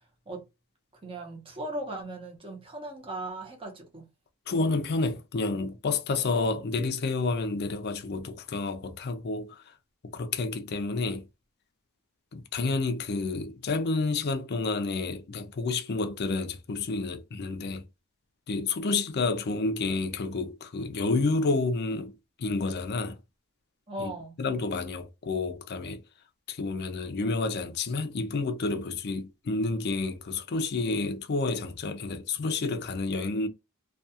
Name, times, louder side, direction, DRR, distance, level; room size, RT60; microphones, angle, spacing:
voice 1, 1.0-4.1 23.9-24.4, right 1 dB, 25° right, 0.8 m, -38 dB
voice 2, 4.5-9.6 10.0-11.2 12.3-17.8 18.5-22.1 22.4-23.2 24.0-24.1 24.4-26.0 26.5-33.5, left 3 dB, 45° left, 0.4 m, -29 dB
2.3 x 2.3 x 2.7 m
head